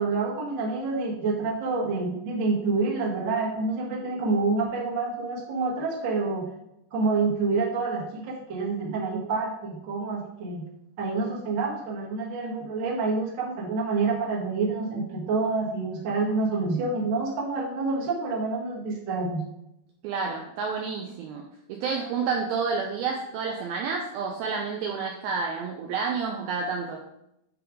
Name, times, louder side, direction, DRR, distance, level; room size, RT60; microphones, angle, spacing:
voice 1, 0.0-6.4 6.9-10.6 11.0-19.4, right 3 dB, 55° right, -3 dB, 1.3 m, -27 dB
voice 2, 20.0-21.4 21.7-27.0, right 5 dB, 80° right, 1 dB, 2.2 m, -29 dB
10.0 x 3.4 x 4.9 m, 0.82 s
omnidirectional pair, 5.0 m